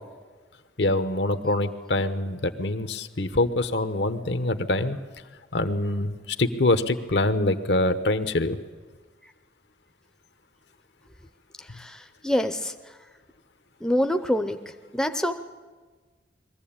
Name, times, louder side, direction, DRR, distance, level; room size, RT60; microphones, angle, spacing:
voice 1, 0.8-5.0 5.5-6.1 6.4-8.6, left 2 dB, 70° left, 10 dB, 1.0 m, -24 dB
voice 2, 11.8-12.7 13.8-14.6 14.9-15.3, left 1 dB, 5° left, 6 dB, 0.6 m, -25 dB
22.0 x 15.0 x 8.7 m, 1.4 s
head